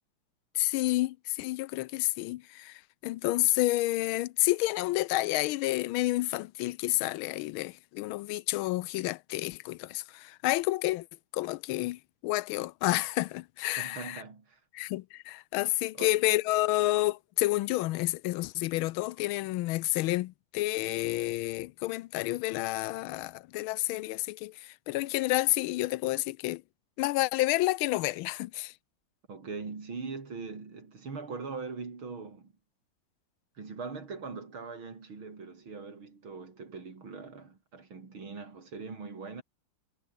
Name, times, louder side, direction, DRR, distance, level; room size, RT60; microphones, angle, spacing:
voice 1, 0.5-11.1 11.3-14.2 14.7-26.6 27.0-28.7, left 18 dB, 90° left, 1.4 m, -30 dB
voice 2, 13.8-14.6 16.0-16.2 29.3-32.5 33.6-39.4, right 4 dB, 85° right, 4.6 m, -41 dB
omnidirectional pair, 2.2 m